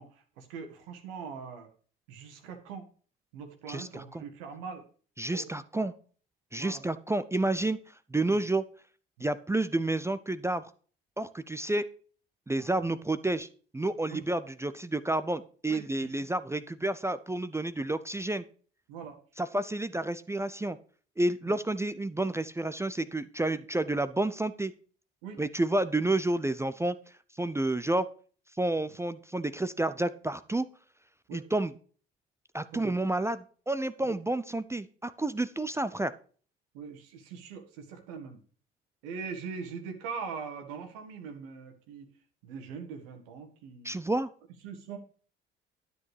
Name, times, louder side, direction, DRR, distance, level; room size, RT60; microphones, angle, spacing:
voice 1, 0.0-1.7 2.1-2.9 3.3-4.8 5.3-5.9 6.6-6.8 8.3-8.4 9.2-9.3 12.5-12.7 14.1-14.2 15.7-16.1 18.9-19.2 21.5-21.6 25.2-25.4 31.3-31.4 32.7-33.1 34.0-34.2 36.7-38.4 39.0-42.1 42.4-44.0 44.6-45.0, right 5 dB, 70° right, 5 dB, 1.6 m, -42 dB
voice 2, 3.7-4.0 5.2-5.9 6.5-7.8 8.1-8.6 9.2-10.6 11.2-11.9 12.5-13.5 13.7-18.4 19.4-20.8 21.2-24.7 25.4-27.0 27.4-28.1 28.6-30.7 31.3-31.7 32.5-36.1 43.8-44.3, right 2 dB, 10° right, 14 dB, 0.5 m, -30 dB
12.5 x 8.4 x 3.4 m, 0.43 s
figure-of-eight pair, 50°, 29 cm